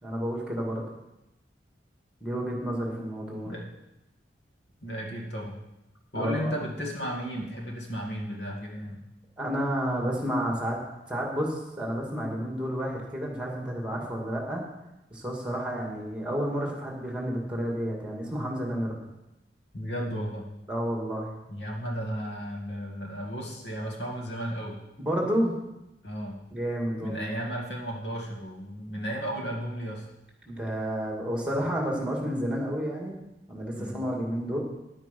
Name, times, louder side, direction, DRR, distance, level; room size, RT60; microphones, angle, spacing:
voice 1, 0.0-0.9 2.2-3.5 6.1-6.5 9.4-10.8 11.1-14.6 15.1-19.0 20.7-21.3 25.0-25.6 26.5-27.3 30.5-33.2 33.5-34.6, equal, 5° right, -1 dB, 2.3 m, -30 dB
voice 2, 4.8-5.6 6.1-9.0 19.7-20.5 21.5-24.8 26.0-26.4 27.0-30.1 33.8-34.0, equal, 65° left, 0 dB, 2.1 m, -34 dB
10.0 x 8.8 x 5.4 m, 0.93 s
head